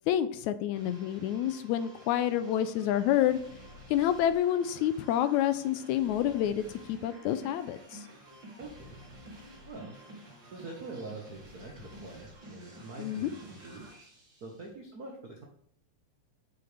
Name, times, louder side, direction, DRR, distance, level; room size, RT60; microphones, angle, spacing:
voice 1, 0.1-3.4 3.9-8.0 13.0-13.3, left 11 dB, 80° left, 12 dB, 1.8 m, -28 dB
sound 1, 0.7-14.7, equal, 40° right, 2.7 m, -51 dB
voice 2, 8.6-9.0 9.6-10.0 10.5-13.8 14.4-15.4, right 3 dB, 75° right, 0 dB, 0.8 m, -44 dB
7.1 x 6.6 x 3.3 m, 0.66 s
omnidirectional pair, 3.4 m